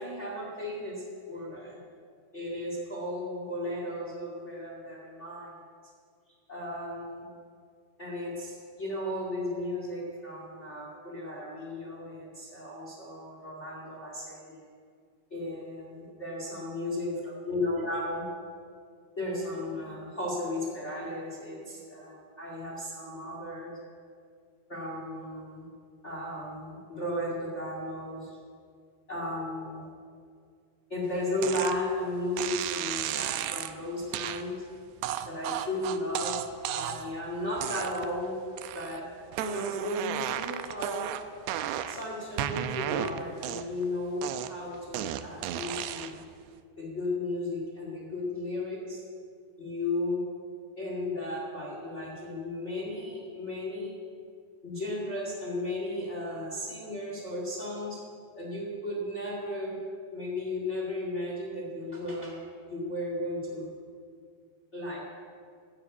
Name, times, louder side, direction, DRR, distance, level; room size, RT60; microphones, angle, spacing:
voice 1, 0.0-1.8 2.3-5.5 6.5-7.3 8.0-14.7 15.3-17.1 17.4-18.3 19.2-23.8 24.7-25.7 26.0-28.4 29.1-29.9 30.9-34.6 35.2-36.4 36.7-38.4 38.7-39.0 39.4-41.1 41.9-46.2 46.8-49.0 49.6-50.2 50.8-54.0 54.6-58.0 58.3-59.8 60.1-62.4 62.7-63.7 64.7-65.0, left 1 dB, 30° left, -2 dB, 1.2 m, -35 dB
sound 1, 31.4-31.8 32.4-33.7 34.1-34.4 35.0-37.1 37.6-38.2 38.6-39.0 39.3-42.0 42.4-43.8 44.2-46.2, right 11 dB, 85° right, 2.3 m, -34 dB
13.5 x 10.0 x 8.2 m, 2.2 s
omnidirectional pair, 5.2 m